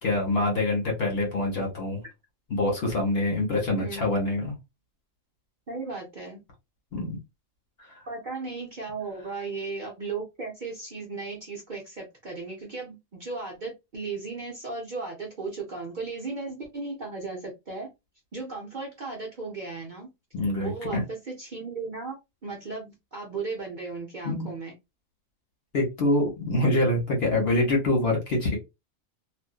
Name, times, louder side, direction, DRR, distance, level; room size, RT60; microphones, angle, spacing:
voice 1, 0.0-2.0 2.5-4.5 6.9-7.2 7.8-7.9 20.3-21.0 24.2-24.5 25.7-28.6, left 2 dB, 50° left, 0 dB, 1.3 m, -25 dB
voice 2, 5.7-6.4 8.1-17.9 18.3-20.1 20.6-24.7, right 4 dB, 45° right, -1 dB, 0.7 m, -36 dB
2.5 x 2.5 x 2.3 m, 0.22 s
omnidirectional pair, 1.4 m